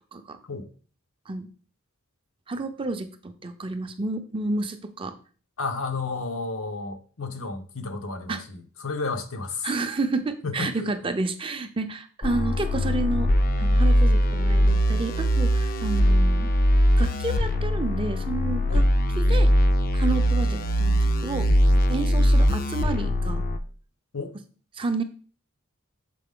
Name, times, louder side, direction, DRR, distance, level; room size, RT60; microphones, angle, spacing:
voice 1, 2.5-5.1 8.3-8.4 9.6-13.3 13.6-16.5 17.0-18.8 19.2-19.5 19.9-21.5 21.9-23.4 24.8-25.0, right 3 dB, 25° right, 8 dB, 0.5 m, -30 dB
voice 2, 5.6-9.7 10.4-10.9 16.1-16.2 18.7-18.8 24.1-24.4, left 3 dB, 80° left, 6 dB, 0.8 m, -32 dB
sound 1, 12.2-23.6, equal, 45° left, 0.5 m, -21 dB
6.7 x 4.0 x 3.7 m, 0.41 s
head